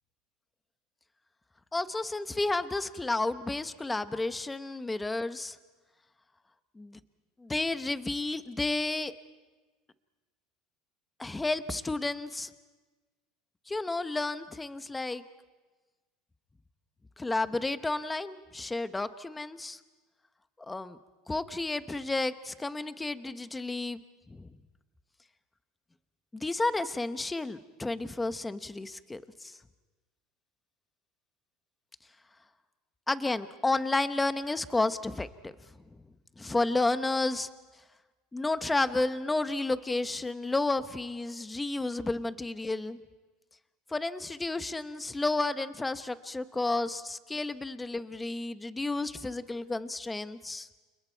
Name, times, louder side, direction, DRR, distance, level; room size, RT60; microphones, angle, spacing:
voice 1, 1.7-5.6 6.8-7.0 7.4-9.1 11.2-12.5 13.7-15.2 17.2-19.8 20.6-21.0 21.3-24.0 24.3-24.5 26.3-29.6 33.1-35.5 36.4-37.5 38.3-43.0 43.9-50.7, left 2 dB, 10° left, 11 dB, 0.9 m, -31 dB
29.5 x 29.0 x 4.6 m, 1.3 s
supercardioid pair, 135°, 0 cm